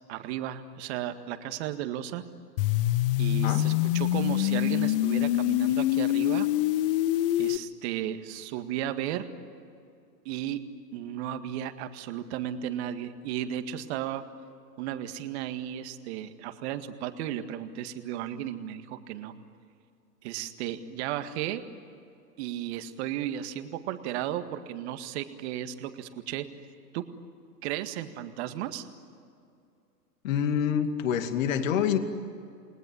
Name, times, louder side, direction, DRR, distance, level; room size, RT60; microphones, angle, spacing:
voice 1, 0.1-2.2 3.2-6.5 7.4-9.3 10.3-10.6 10.9-14.2 14.8-19.3 20.2-21.6 22.4-26.4 26.9-27.0 27.6-28.9, right 11 dB, 40° right, 9 dB, 1.9 m, -34 dB
sound 1, 2.6-7.6, left 15 dB, 35° left, 0.7 m, -25 dB
voice 2, 30.2-32.0, left 8 dB, 50° left, 8 dB, 2.5 m, -26 dB
29.0 x 20.5 x 9.8 m, 2.4 s
figure-of-eight pair, 110°, 49 cm